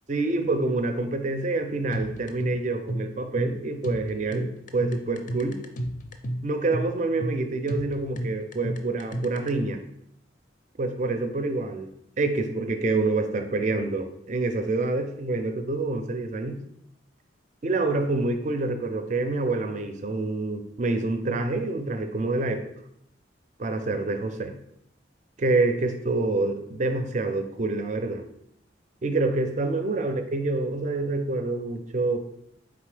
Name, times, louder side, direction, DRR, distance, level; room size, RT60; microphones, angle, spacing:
voice 1, 0.1-5.6 6.4-9.8 10.8-11.9 12.2-16.6 17.6-22.7 23.6-24.5 25.4-28.2 29.0-32.2, right 3 dB, 40° right, 7 dB, 0.4 m, -27 dB
sound 1, 1.9-9.5, equal, 45° left, 0.4 m, -32 dB
3.8 x 3.7 x 3.3 m, 0.74 s
head